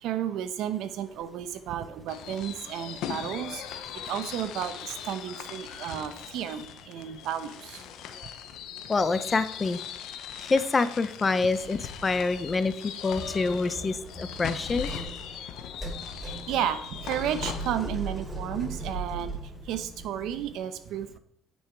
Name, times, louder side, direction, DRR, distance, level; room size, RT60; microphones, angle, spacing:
voice 1, 0.0-7.8 16.2-19.3 19.7-21.2, right 10 dB, 75° right, 10 dB, 0.9 m, -33 dB
sound 1, 0.8-1.5 1.8-7.4 7.7-8.8 9.0-9.3 9.6-10.3 10.8-12.6 13.0-20.6, right 2 dB, 5° right, 3.2 m, -41 dB
sound 2, 2.1-17.7, left 9 dB, 75° left, 0.9 m, -40 dB
voice 2, 8.9-9.8 10.4-12.7 13.0-14.9, left 3 dB, 30° left, 13 dB, 0.7 m, -26 dB
9.5 x 5.6 x 4.7 m, 0.67 s
cardioid pair, 90°, 0 cm